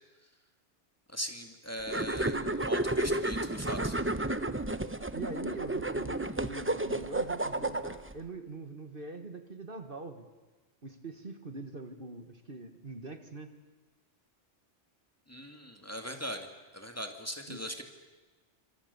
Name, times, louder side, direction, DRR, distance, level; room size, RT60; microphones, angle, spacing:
voice 1, 1.1-3.9 15.3-16.5 16.7-17.8, equal, 10° left, 5 dB, 2.5 m, -40 dB
sound 1, 1.9-8.1, right 1 dB, 10° right, 0.8 m, -32 dB
voice 2, 5.1-10.3 10.8-13.5 17.5-17.6, right 3 dB, 50° right, 7 dB, 1.9 m, -43 dB
28.0 x 26.5 x 7.1 m, 1.2 s
omnidirectional pair, 1.2 m